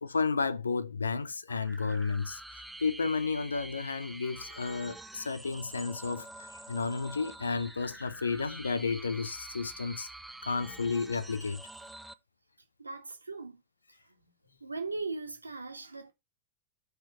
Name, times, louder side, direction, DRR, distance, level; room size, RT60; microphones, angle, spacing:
voice 1, 0.0-10.1 10.5-11.6, left 4 dB, 75° left, 0.8 m, -32 dB
sound 1, 1.5-12.1, right 2 dB, 5° right, 0.7 m, -47 dB
voice 2, 12.8-13.6 14.6-16.1, right 3 dB, 80° right, 1.6 m, -38 dB
5.8 x 5.3 x 6.3 m
figure-of-eight pair, 90°, 0 cm